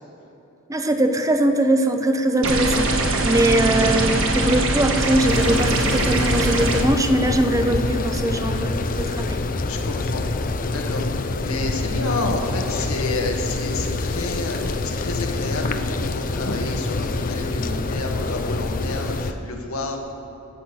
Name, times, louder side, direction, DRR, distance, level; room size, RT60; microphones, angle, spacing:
voice 1, 0.7-9.4, right 1 dB, 15° right, 6 dB, 0.7 m, -21 dB
sound 1, 2.4-6.8, right 2 dB, 65° right, 1.3 m, -21 dB
sound 2, 5.3-19.3, left 3 dB, 40° left, 0.5 m, -26 dB
voice 2, 6.5-6.9 9.7-10.2 10.7-20.0, left 2 dB, 90° left, 2 dB, 1.6 m, -30 dB
14.0 x 7.9 x 6.2 m, 3.0 s
head